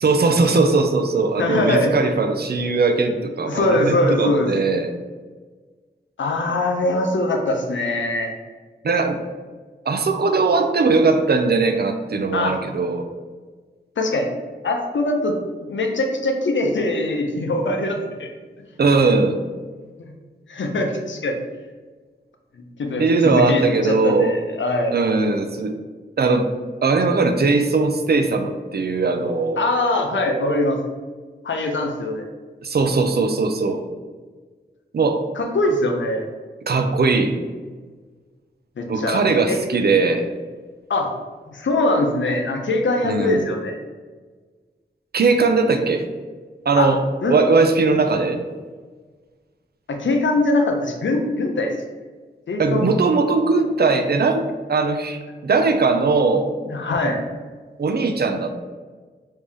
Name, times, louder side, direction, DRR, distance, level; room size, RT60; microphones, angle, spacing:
voice 1, 0.0-4.9 8.8-9.2 9.9-13.0 18.8-19.4 23.0-24.4 24.9-25.8 26.2-26.5 26.8-29.6 32.6-33.8 34.9-35.2 36.7-37.3 38.9-40.3 43.0-43.4 45.1-46.0 46.7-47.0 47.3-48.4 52.6-56.5 57.8-58.5, right 3 dB, 55° right, 6 dB, 0.4 m, -19 dB
voice 2, 1.4-1.9 3.4-4.5 6.2-8.3 12.3-12.6 14.0-14.3 14.6-18.3 20.0-20.1 20.5-21.4 22.8-24.9 29.6-30.8 31.4-32.3 35.4-36.2 38.8-39.6 40.9-41.1 41.5-43.8 46.8-46.9 47.2-47.4 49.9-51.7 52.5-52.9 56.7-57.2, left 2 dB, 75° left, 3 dB, 0.6 m, -22 dB
3.4 x 2.7 x 3.5 m, 1.4 s
wide cardioid pair, 60°, 19 cm